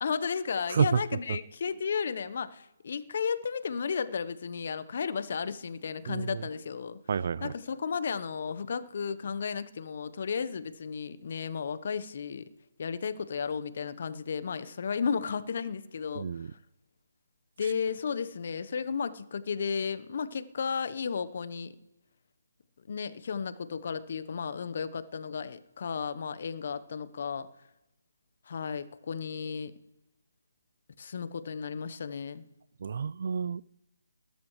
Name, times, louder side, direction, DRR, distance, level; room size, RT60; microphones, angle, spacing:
voice 1, 0.0-7.0 7.4-12.5 12.8-16.6 17.6-21.8 22.9-27.5 28.5-29.7 31.0-32.4, left 6 dB, 50° left, 13 dB, 1.0 m, -34 dB
voice 2, 6.1-6.4 7.1-7.5 16.2-16.5 32.8-33.6, right 6 dB, 50° right, 21 dB, 0.4 m, -29 dB
20.5 x 12.5 x 3.2 m, 0.95 s
figure-of-eight pair, 150°, 0 cm